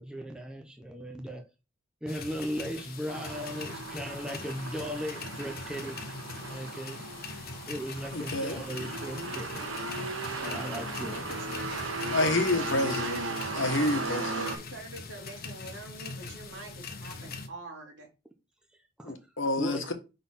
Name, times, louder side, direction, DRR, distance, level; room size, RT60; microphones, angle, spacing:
voice 1, 0.0-1.5 2.0-6.1 6.5-7.1 7.7-9.7 10.4-11.2 18.7-19.1 19.6-19.9, equal, 5° right, 0.7 m, -37 dB
sound 1, 2.1-17.5, left 4 dB, 50° left, 1.1 m, -42 dB
sound 2, 3.1-14.6, right 3 dB, 80° right, 1.4 m, -37 dB
voice 2, 8.1-8.6 12.1-13.2 13.5-14.5 19.0-19.9, left 2 dB, 65° left, 1.3 m, -28 dB
voice 3, 11.0-11.9 12.5-13.5 13.9-18.1, right 2 dB, 65° right, 2.7 m, -44 dB
5.3 x 4.1 x 5.6 m
head